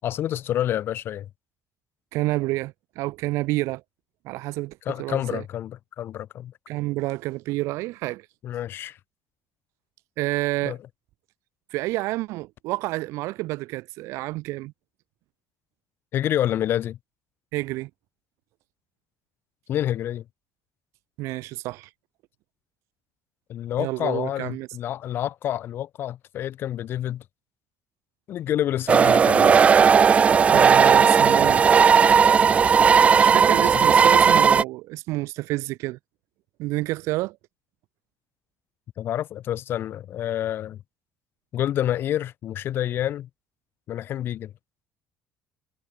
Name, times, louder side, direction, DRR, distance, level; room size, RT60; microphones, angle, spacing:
voice 1, 0.0-1.3 4.9-6.5 8.4-9.0 10.7-10.8 16.1-17.0 19.7-20.2 23.5-27.2 28.3-29.6 33.7-33.8 39.0-40.8 41.5-43.3 43.9-44.5, left 11 dB, 50° left, 6.2 m, -28 dB
voice 2, 2.1-3.8 4.2-5.4 6.7-8.3 10.2-10.8 11.7-14.7 17.5-17.9 21.2-21.9 23.8-24.7 30.5-31.6 33.2-36.0 36.6-37.4, right 19 dB, 85° right, 7.4 m, -29 dB
sound 1, 28.9-34.6, right 6 dB, 25° right, 1.1 m, -16 dB
cardioid pair, 160°, 5 cm